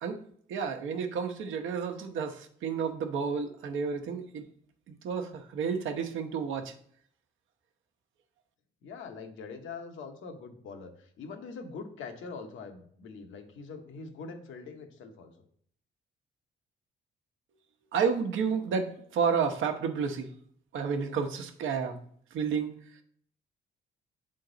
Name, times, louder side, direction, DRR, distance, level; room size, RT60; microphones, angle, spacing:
voice 1, 0.5-4.5 4.9-6.7 17.9-20.3 20.7-22.0 22.3-22.7, right 6 dB, 80° right, 5 dB, 0.9 m, -31 dB
voice 2, 8.8-15.3, left 4 dB, 80° left, 5 dB, 1.1 m, -43 dB
7.8 x 3.8 x 3.9 m, 0.62 s
cardioid pair, 90°, 20 cm